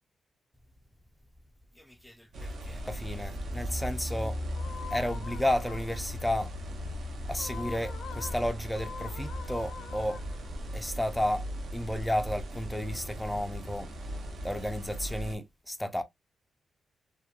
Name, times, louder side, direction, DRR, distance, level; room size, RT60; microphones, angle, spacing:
voice 1, 1.8-4.4 4.9-6.5 7.3-10.2 10.7-11.4 11.7-13.9 14.4-16.0, left 1 dB, 5° left, 0.3 m, -32 dB
sound 1, 2.3-15.3, equal, 65° right, 0.6 m, -37 dB
sound 2, 4.6-6.2 7.3-10.7, left 7 dB, 85° left, 0.4 m, -45 dB
2.8 x 2.2 x 2.3 m
wide cardioid pair, 150°, 0 cm